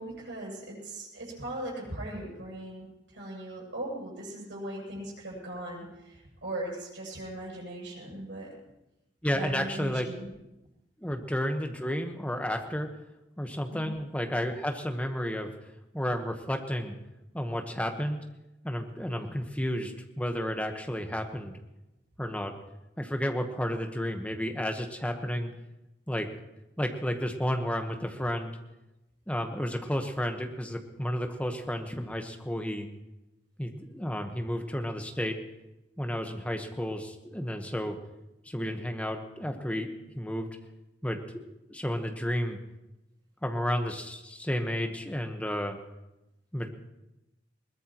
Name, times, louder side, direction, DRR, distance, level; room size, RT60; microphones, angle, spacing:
voice 1, 0.0-8.5 9.3-10.3 13.7-13.9, right 1 dB, 80° right, -4 dB, 7.9 m, -39 dB
voice 2, 9.2-10.1 11.0-12.9 13.4-15.5 15.9-16.9 17.3-18.2 18.6-21.6 22.2-22.5 23.0-25.5 26.1-26.3 26.8-28.5 29.3-32.9 33.6-35.4 36.0-38.0 38.4-40.5 41.0-42.6 43.4-45.8 46.5-46.7, equal, 10° left, 5 dB, 1.1 m, -32 dB
21.5 x 19.5 x 3.0 m, 0.95 s
head